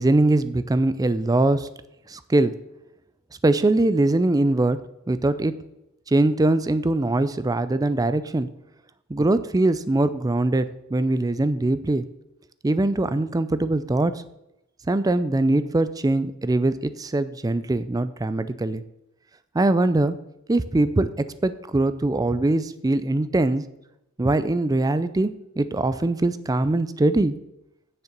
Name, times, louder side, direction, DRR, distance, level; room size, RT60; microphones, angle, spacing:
voice 1, 0.0-1.7 2.1-2.5 3.4-4.8 5.1-5.5 6.1-8.5 9.1-12.0 12.6-14.1 14.9-18.8 19.5-20.2 20.5-23.6 24.2-25.3 25.6-27.3, right 2 dB, 15° right, 13 dB, 0.4 m, -22 dB
7.4 x 6.6 x 6.6 m, 0.87 s
head